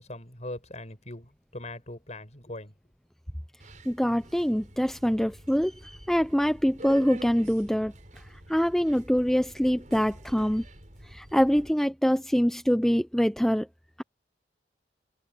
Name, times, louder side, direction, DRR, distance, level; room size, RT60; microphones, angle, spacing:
voice 1, 0.0-2.7, left 1 dB, 40° left, 6.3 m, -41 dB
Subway metro underground, 3.6-11.7, right 1 dB, 45° right, 6.2 m, -47 dB
voice 2, 3.9-7.9 8.5-10.6 11.0-13.7, equal, ahead, 0.6 m, -24 dB
head